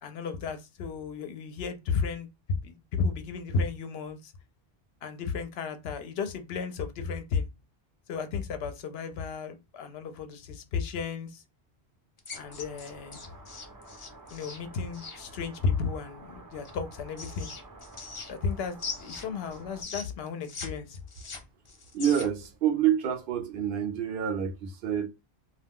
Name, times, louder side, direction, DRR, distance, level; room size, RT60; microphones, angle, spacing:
voice 1, 0.0-2.3 2.6-4.3 5.0-7.5 8.1-11.4 12.3-13.2 14.3-17.5 18.3-21.0, left 5 dB, 70° left, 0.8 m, -33 dB
sound 1, 12.2-15.2 16.6-18.5 18.8-20.7 20.9-22.5, left 4 dB, 40° left, 0.4 m, -41 dB
sound 2, 12.3-19.8, right 2 dB, 25° right, 0.5 m, -50 dB
voice 2, 21.9-25.1, right 9 dB, 60° right, 0.7 m, -27 dB
2.3 x 2.2 x 3.4 m
omnidirectional pair, 1.1 m